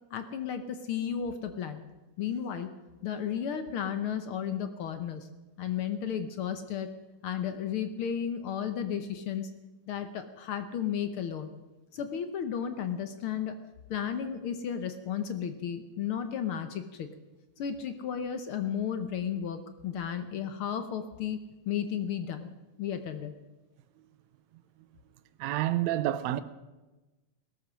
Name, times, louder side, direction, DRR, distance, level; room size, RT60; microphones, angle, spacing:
voice 1, 0.1-1.8 2.2-2.7 3.0-5.3 5.6-6.9 7.2-9.5 9.9-11.5 11.9-13.6 13.9-17.1 17.6-21.4 21.6-22.5 22.8-23.3, left 8 dB, 70° left, 1.3 m, -33 dB
voice 2, 25.4-26.4, right 14 dB, 75° right, 1.9 m, -28 dB
17.5 x 13.0 x 6.2 m
omnidirectional pair, 3.5 m